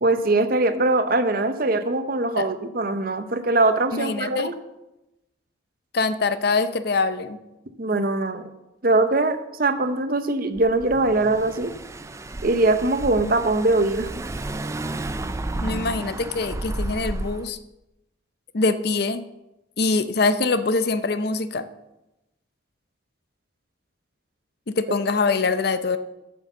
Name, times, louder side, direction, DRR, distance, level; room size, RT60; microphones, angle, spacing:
voice 1, 0.0-4.5 7.8-8.5 8.8-11.7 12.4-14.1, right 2 dB, 45° right, 9 dB, 0.7 m, -22 dB
voice 2, 3.9-4.5 5.9-7.4 15.6-17.6 18.5-19.3 19.8-21.7 24.7-26.0, left 3 dB, 50° left, 12 dB, 0.6 m, -23 dB
Car / Engine, 10.6-17.5, right 2 dB, 15° right, 0.3 m, -32 dB
8.0 x 6.5 x 7.1 m, 0.96 s
head